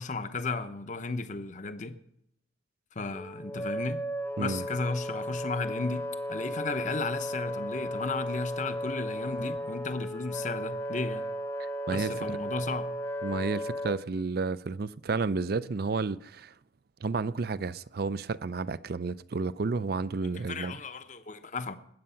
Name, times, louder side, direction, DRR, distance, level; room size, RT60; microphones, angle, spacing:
voice 1, 0.0-2.0 2.9-4.0 4.4-11.3 11.9-12.9 20.5-21.8, left 3 dB, 40° left, 0.9 m, -34 dB
Wind instrument woodwind instrument, 3.1-14.0, equal, 15° left, 0.9 m, -35 dB
voice 2, 11.9-12.4 13.2-16.5 17.0-20.8, right 4 dB, 55° right, 0.5 m, -31 dB
20.0 x 8.8 x 5.7 m
head